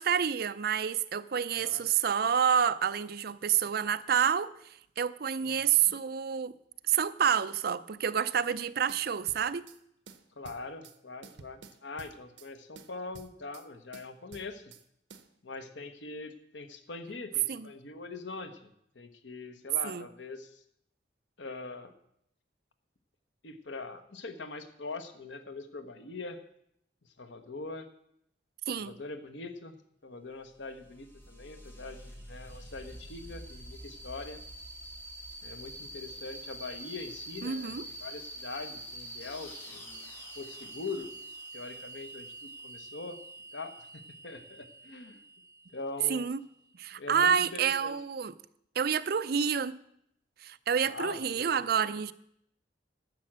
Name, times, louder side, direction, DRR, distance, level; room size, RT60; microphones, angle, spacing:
voice 1, 0.0-4.5 5.0-6.5 6.9-9.6 17.5-17.7 19.8-20.1 28.7-29.0 37.4-37.8 46.1-46.4 46.8-48.3 48.8-49.8 50.4-52.1, right 7 dB, 60° right, 0.5 m, -28 dB
voice 2, 1.6-1.9 5.4-6.0 10.4-14.7 15.4-20.6 21.4-21.9 23.4-26.4 27.2-27.9 28.8-29.8 30.0-34.4 35.4-40.0 40.3-41.1 41.5-43.2 43.5-45.2 45.7-46.2 46.9-48.0 50.8-51.6, left 3 dB, 90° left, 1.1 m, -42 dB
sound 1, 8.9-9.8 10.1-11.0 11.2-12.5 12.8-13.7 13.9-14.8 15.1-15.3, right 4 dB, 80° right, 0.9 m, -51 dB
sound 2, 30.4-46.7, right 1 dB, 15° left, 2.0 m, -46 dB
11.5 x 7.7 x 7.4 m
head